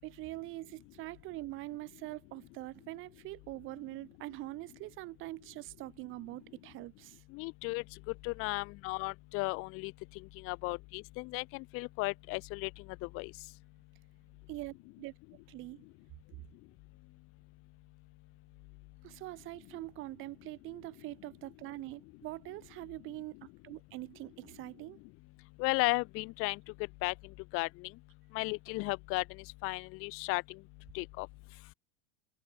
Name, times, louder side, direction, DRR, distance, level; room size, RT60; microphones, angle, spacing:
voice 1, 0.0-7.2 14.5-15.1 15.5-15.9 19.0-25.0, right 20 dB, 45° right, 4.6 m, -44 dB
voice 2, 7.3-7.8 8.2-9.9 10.4-12.7 13.1-13.3 25.6-26.6 27.0-27.1 27.5-27.9 28.3-29.2 29.6-30.4 30.9-31.3, left 26 dB, 50° left, 3.3 m, -34 dB
supercardioid pair, 135°, 29 cm